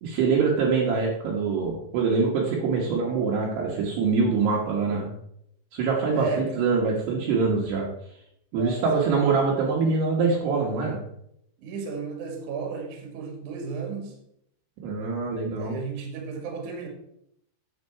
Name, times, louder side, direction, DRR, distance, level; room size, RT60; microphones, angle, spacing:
voice 1, 0.0-5.1 5.7-7.9 8.5-11.0 14.8-15.7, right 4 dB, 70° right, -3 dB, 3.0 m, -24 dB
voice 2, 6.1-6.6 8.6-9.1 11.6-14.2 15.5-16.9, right 5 dB, 55° right, 1 dB, 2.6 m, -34 dB
8.6 x 7.4 x 4.6 m, 0.75 s
omnidirectional pair, 5.6 m